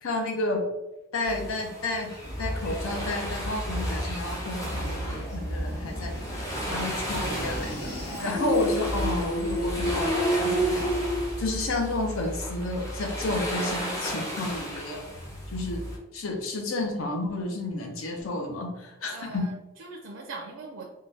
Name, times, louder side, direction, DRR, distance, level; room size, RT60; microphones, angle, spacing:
voice 1, 0.0-0.6 1.1-2.1 2.4-6.4 6.7-7.9 8.2-10.9 11.4-15.0 15.5-15.8 16.1-19.4, left 2 dB, 75° left, 2 dB, 0.6 m, -31 dB
sound 1, 1.2-16.0, equal, 15° left, 0.6 m, -35 dB
sound 2, 2.2-11.6, equal, 50° left, 1.3 m, -31 dB
voice 2, 19.1-20.8, right 3 dB, 65° right, -1 dB, 0.4 m, -41 dB
3.7 x 2.2 x 2.6 m, 1.0 s
head